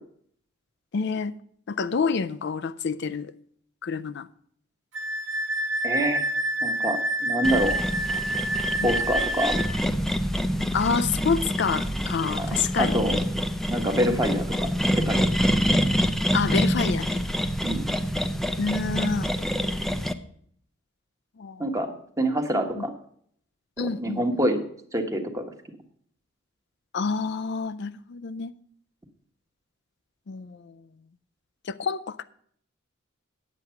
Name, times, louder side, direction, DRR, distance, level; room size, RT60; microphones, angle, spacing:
voice 1, 0.9-1.3 1.7-3.3 3.8-4.3 10.7-13.2 16.3-17.2 18.6-19.3 21.4-21.8 22.8-22.9 23.8-24.2 26.9-28.5 30.3-30.7 31.7-32.2, left 5 dB, 55° left, 0.4 m, -28 dB
Wind instrument woodwind instrument, 4.9-9.7, right 1 dB, 65° right, 1.1 m, -27 dB
voice 2, 5.8-6.2 6.6-7.7 8.8-9.6 12.4-13.2 13.7-14.7 15.1-15.3 15.6-15.7 17.6-17.8 21.6-21.9 22.2-22.9 23.8-24.6 24.9-25.4, right 1 dB, 15° right, 1.3 m, -26 dB
sound 1, 7.4-20.1, equal, ahead, 0.5 m, -26 dB
9.8 x 8.3 x 5.7 m
head